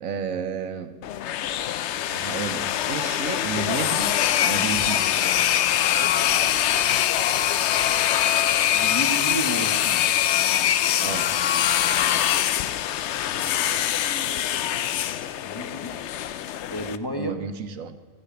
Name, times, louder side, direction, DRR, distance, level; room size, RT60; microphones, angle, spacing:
voice 1, 0.0-1.0 2.1-5.2 11.0-11.3 17.1-18.0, right 6 dB, 75° right, 10 dB, 1.3 m, -32 dB
sound 1, 1.0-17.0, left 11 dB, 65° left, 0.8 m, -23 dB
voice 2, 8.7-10.3 15.4-15.9 16.7-17.3, right 1 dB, 20° left, 3 dB, 0.9 m, -31 dB
15.0 x 6.8 x 9.9 m, 1.3 s
omnidirectional pair, 1.4 m